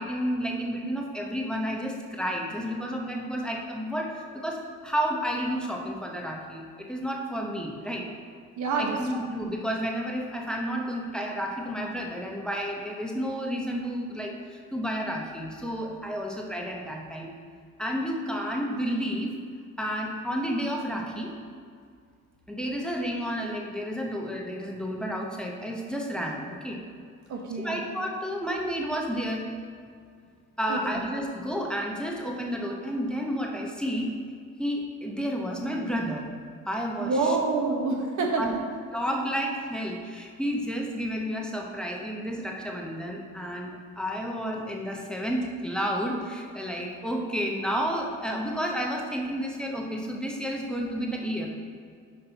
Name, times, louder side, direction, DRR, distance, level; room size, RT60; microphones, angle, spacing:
voice 1, 0.0-8.1 8.8-17.3 17.8-19.3 19.8-21.3 22.5-26.8 27.6-29.4 30.6-34.1 34.6-36.3 36.7-37.1 38.4-38.5 38.9-51.5, equal, 5° left, 0 dB, 0.8 m, -31 dB
voice 2, 8.6-9.3 27.3-27.8 30.7-31.0 37.0-38.6, right 3 dB, 75° right, 1 dB, 1.1 m, -27 dB
5.8 x 5.3 x 3.9 m, 2.1 s
cardioid pair, 90°, 30 cm